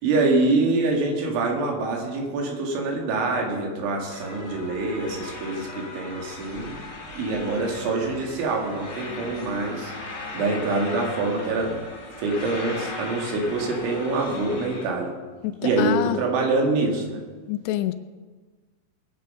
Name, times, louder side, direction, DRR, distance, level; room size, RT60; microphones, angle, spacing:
voice 1, 0.0-6.8 7.1-9.9 10.3-11.8 12.2-15.1 15.6-17.2, right 3 dB, 90° right, 0 dB, 4.6 m, -25 dB
sound 1, 4.1-14.9, left 2 dB, 30° left, 2.0 m, -38 dB
voice 2, 15.4-16.2 17.5-17.9, left 14 dB, 80° left, 10 dB, 2.7 m, -26 dB
20.5 x 8.6 x 5.6 m, 1.4 s
omnidirectional pair, 5.3 m